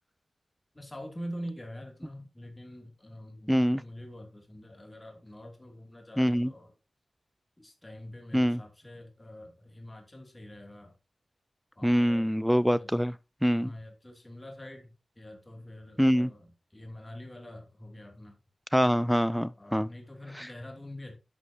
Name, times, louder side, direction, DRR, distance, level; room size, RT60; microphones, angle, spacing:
voice 1, 0.7-6.7 7.6-11.0 11.7-12.3 12.8-13.1 13.5-18.4 19.6-21.2, equal, 25° left, 2.9 m, -45 dB
voice 2, 3.5-3.8 6.2-6.5 8.3-8.6 11.8-13.1 13.4-13.7 16.0-16.3 18.7-19.9 20.4-20.5, equal, ahead, 0.6 m, -24 dB
11.0 x 6.4 x 2.9 m
cardioid pair, 55°, 0 cm